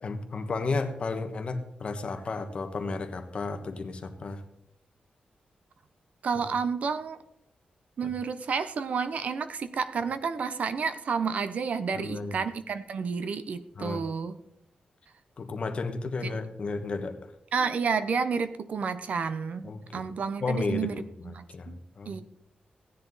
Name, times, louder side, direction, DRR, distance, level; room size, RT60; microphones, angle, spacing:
voice 1, 0.0-4.4 8.0-8.1 11.9-12.4 13.7-14.0 15.4-17.3 19.6-20.1 20.4-21.7 22.0-22.2, left 3 dB, 45° left, 7 dB, 1.3 m, -33 dB
voice 2, 6.2-7.2 8.0-14.4 17.5-20.9 21.2-21.8 22.1-22.2, right 5 dB, 60° right, 11 dB, 0.8 m, -30 dB
16.0 x 10.0 x 4.1 m, 0.81 s
wide cardioid pair, 150°, 3 cm